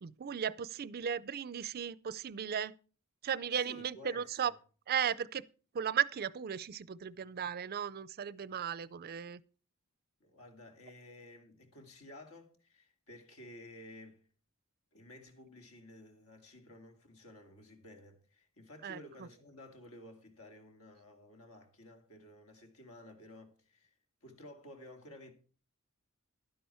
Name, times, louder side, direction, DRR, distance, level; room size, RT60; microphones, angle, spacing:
voice 1, 0.0-2.7 3.2-4.5 4.9-5.5 5.7-9.4 18.8-19.0, right 8 dB, 45° right, 0.4 m, -36 dB
voice 2, 3.5-4.6 10.2-14.3 14.9-23.9 24.2-25.3, left 1 dB, 70° left, 2.4 m, -54 dB
12.0 x 10.0 x 4.3 m
head